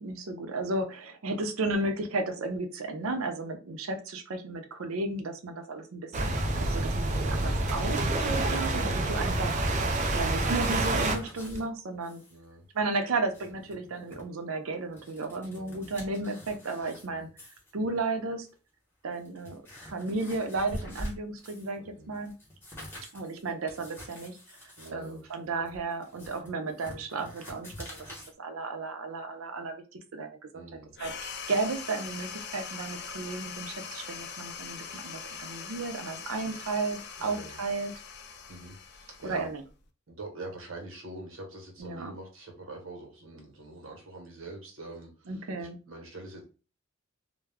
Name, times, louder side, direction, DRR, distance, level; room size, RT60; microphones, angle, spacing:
voice 1, 0.0-9.8 10.1-12.2 12.7-17.3 17.7-18.5 19.0-22.3 23.1-24.4 24.9-28.0 28.4-29.8 30.1-30.6 31.0-37.9 39.2-39.6 41.8-42.1 45.3-45.8, right 3 dB, 85° right, 6 dB, 0.5 m, -34 dB
sound 1, 6.1-11.2, right 2 dB, 35° right, 0.3 m, -28 dB
sound 2, 10.5-11.6 12.0-12.4 12.6-12.7 13.1-14.2 14.7-17.1 17.4-17.7 18.5-18.6 19.1-21.8 22.1-28.3, equal, 10° left, 0.9 m, -45 dB
voice 2, 12.3-12.7 15.5-15.7 17.0-17.3 21.7-22.1 24.8-25.6 30.5-30.9 37.2-37.6 38.5-39.5 40.1-46.4, right 2 dB, 65° right, 1 dB, 0.9 m, -45 dB
sound 3, 31.0-39.8, left 6 dB, 55° left, 0.3 m, -42 dB
2.2 x 2.0 x 3.4 m, 0.34 s
head